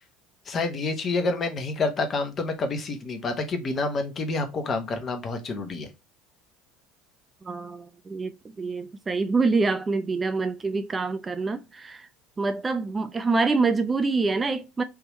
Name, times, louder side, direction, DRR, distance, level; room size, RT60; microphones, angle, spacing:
voice 1, 0.5-5.9, left 3 dB, 35° left, 1.0 m, -28 dB
voice 2, 7.4-12.1 12.4-14.8, right 3 dB, 25° right, 0.4 m, -26 dB
3.5 x 2.9 x 2.9 m
hypercardioid pair, 70°, 0 cm